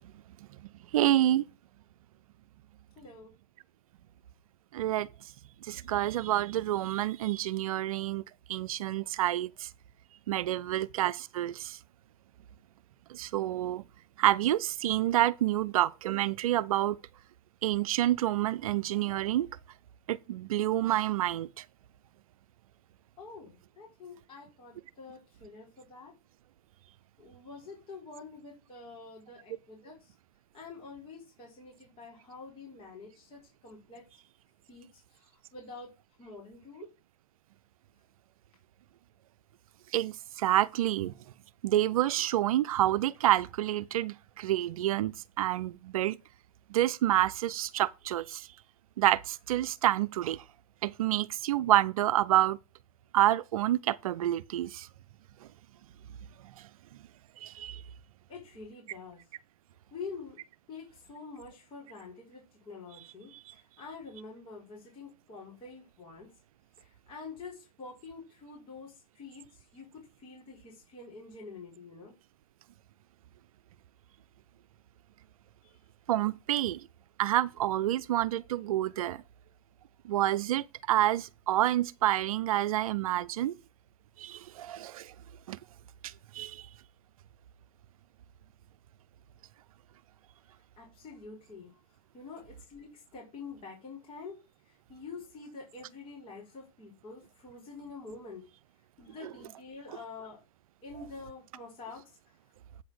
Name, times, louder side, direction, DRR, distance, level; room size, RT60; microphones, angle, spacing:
voice 1, 0.9-1.4 4.7-5.1 5.6-8.2 8.5-9.7 10.3-11.8 13.1-13.8 14.2-17.0 17.6-19.5 20.1-21.6 39.9-41.1 41.6-46.2 46.7-48.5 49.0-50.4 50.8-52.6 53.1-54.9 57.4-57.8 76.1-76.8 77.2-79.2 80.0-83.5 84.2-85.1 85.5-85.6 86.0-86.6 99.2-99.3, right 13 dB, 75° right, 0.5 m, -28 dB
voice 2, 3.0-3.3 10.5-10.8 23.2-26.1 27.2-30.1 30.5-34.0 34.7-35.9 36.2-36.9 58.3-59.2 59.9-60.4 60.7-66.3 66.8-72.1 75.6-75.7 90.8-91.7 92.1-98.4 99.0-100.4 100.8-102.2, left 4 dB, 30° left, 3.9 m, -47 dB
8.5 x 4.2 x 6.2 m
hypercardioid pair, 120°, 18 cm